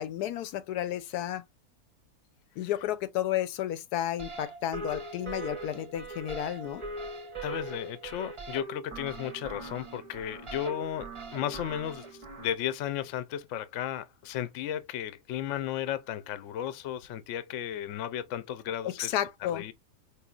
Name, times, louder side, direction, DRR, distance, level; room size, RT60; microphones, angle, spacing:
voice 1, 0.0-1.4 2.6-6.8 18.8-19.6, left 12 dB, 85° left, 1.1 m, -32 dB
sound 1, 4.2-12.5, right 3 dB, 30° right, 0.5 m, -41 dB
voice 2, 7.4-19.1 19.5-19.7, left 10 dB, 65° left, 0.8 m, -34 dB
4.7 x 2.7 x 2.3 m
omnidirectional pair, 1.6 m